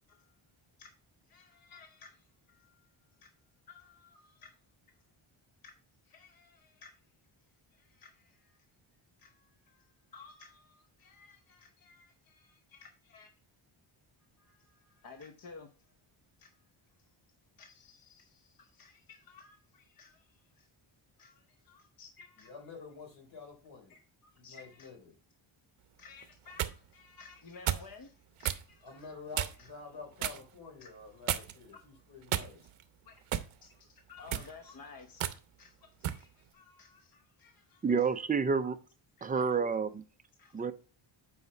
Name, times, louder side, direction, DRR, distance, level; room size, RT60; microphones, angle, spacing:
voice 1, 1.3-2.9 3.2-3.3 3.7-4.5 5.6-5.7 6.0-7.0 7.7-8.6 9.2-13.3 14.4-15.9 16.4-16.6 17.6-20.7 21.2-22.5 23.9-24.9 26.0-29.1 29.6-29.7 30.8-30.9 31.7-31.8 33.0-33.1 33.6-35.2 35.6-38.1 39.2-39.6 40.4-40.6, left 4 dB, 45° left, 0.9 m, -55 dB
voice 2, 22.4-24.0 24.4-25.2 28.8-32.8, left 4 dB, 60° left, 3.5 m, -49 dB
sound 1, 26.2-26.8 27.7-27.9 28.4-28.6 29.3-29.7 30.2-30.4 31.3-31.7 32.3-32.8 33.3-33.5 34.2-34.5 35.2-35.4 36.0-36.2, right 11 dB, 80° right, 0.8 m, -33 dB
voice 3, 37.8-38.8 39.2-40.0 40.5-40.7, right 5 dB, 20° right, 0.4 m, -29 dB
8.1 x 4.9 x 3.2 m
wide cardioid pair, 150°, 49 cm